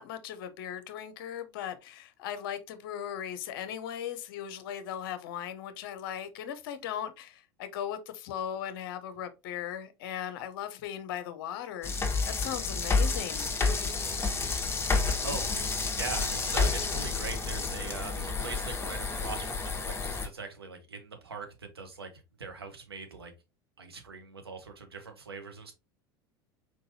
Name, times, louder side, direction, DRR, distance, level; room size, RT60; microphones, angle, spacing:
voice 1, 0.0-11.9 12.2-13.5, left 10 dB, 60° left, 0.8 m, -38 dB
sound 1, 11.8-20.3, left 4 dB, 20° left, 1.2 m, -30 dB
voice 2, 15.8-22.1 22.4-23.3 23.8-25.7, right 4 dB, 85° right, 1.1 m, -41 dB
4.6 x 3.8 x 2.7 m
figure-of-eight pair, 75°, 13 cm